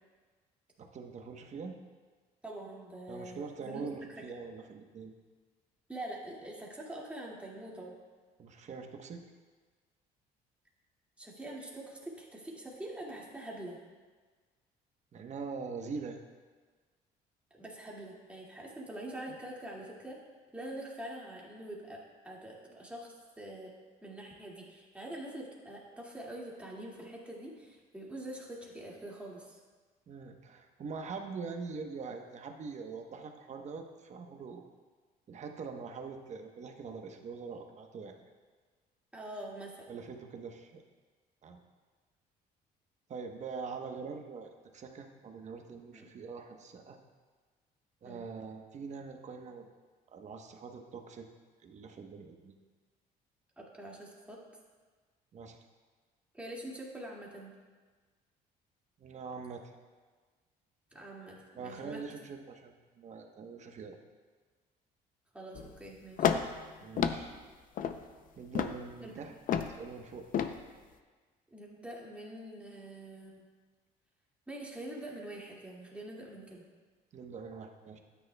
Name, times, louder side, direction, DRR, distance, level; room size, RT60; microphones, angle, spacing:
voice 1, 0.8-1.8 3.1-5.1 8.4-9.2 15.1-16.2 30.1-34.7 35.3-38.2 39.9-40.8 41.4-41.6 43.1-47.0 48.0-49.7 50.1-51.3 51.6-52.5 55.3-55.6 59.0-59.7 61.6-64.0 66.8-67.3 68.4-69.3 69.8-70.3 77.1-78.0, right 5 dB, 45° right, 4 dB, 1.1 m, -43 dB
voice 2, 2.4-3.9 4.2-4.3 5.9-7.9 11.2-13.8 17.5-20.2 20.5-23.7 24.0-29.6 39.1-39.9 45.9-46.1 48.0-48.3 53.6-54.4 56.3-57.6 60.9-62.0 65.3-66.3 69.0-69.2 71.5-73.5 74.5-76.6, right 1 dB, 5° right, -4 dB, 2.2 m, -45 dB
sound 1, 65.6-65.8 66.2-66.6 67.0-67.3 67.8-68.0 68.5-68.8 69.5-69.7 70.3-70.6, left 8 dB, 55° left, 0.6 m, -30 dB
12.5 x 9.5 x 2.3 m, 1.4 s
cardioid pair, 110°, 17 cm